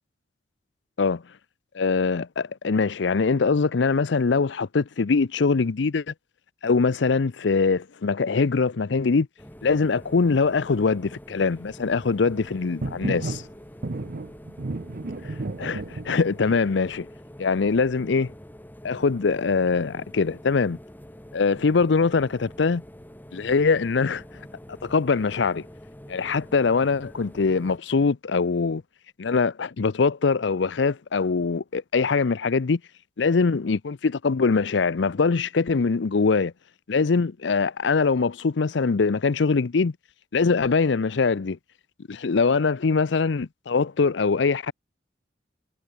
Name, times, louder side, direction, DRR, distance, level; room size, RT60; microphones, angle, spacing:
voice 1, 1.7-6.1 6.6-9.3 9.6-13.4 15.6-17.1 17.4-18.3 18.8-20.8 21.3-22.8 23.3-24.2 24.8-25.7 26.1-28.8 29.2-32.8 33.2-36.5 36.9-39.9 40.3-41.6 42.1-44.7, left 4 dB, 70° left, 0.6 m, -23 dB
sound 1, 9.4-27.8, equal, 10° left, 1.9 m, -46 dB
sound 2, 12.8-13.5 13.8-16.6, right 2 dB, 55° right, 0.8 m, -32 dB
head